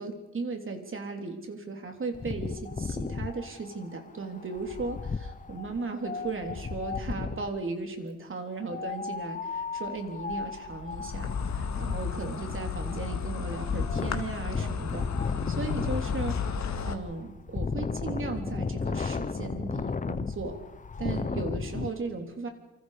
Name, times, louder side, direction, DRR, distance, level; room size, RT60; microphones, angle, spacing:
voice 1, 0.0-15.1 15.5-20.6 21.0-22.5, right 3 dB, 40° right, 4 dB, 3.4 m, -36 dB
Wind, 2.1-7.6 8.6-21.9, left 4 dB, 25° left, 0.8 m, -35 dB
Insect, 10.9-16.9, left 6 dB, 55° left, 2.1 m, -32 dB
28.0 x 26.0 x 5.1 m, 0.95 s
wide cardioid pair, 155°, 32 cm